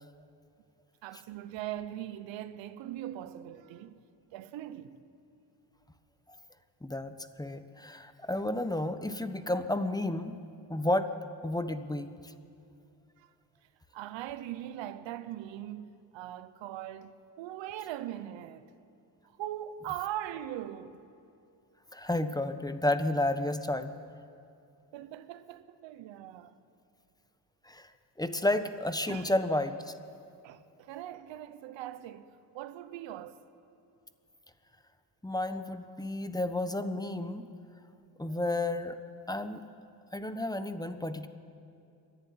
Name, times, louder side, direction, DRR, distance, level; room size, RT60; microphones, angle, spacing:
voice 1, 1.0-4.0 4.3-5.0 13.2-13.3 13.9-18.7 19.4-21.0 24.9-26.6 29.1-29.3 30.4-33.4, right 12 dB, 85° right, 1.0 m, -41 dB
voice 2, 6.8-7.1 7.4-10.4 10.7-11.1 11.4-12.3 21.9-23.9 27.6-27.9 28.2-29.9 35.2-37.5 38.2-39.0 39.3-39.6 40.1-41.3, left 1 dB, 10° left, 1.1 m, -31 dB
25.5 x 11.5 x 9.6 m
cardioid pair, 80°, 44 cm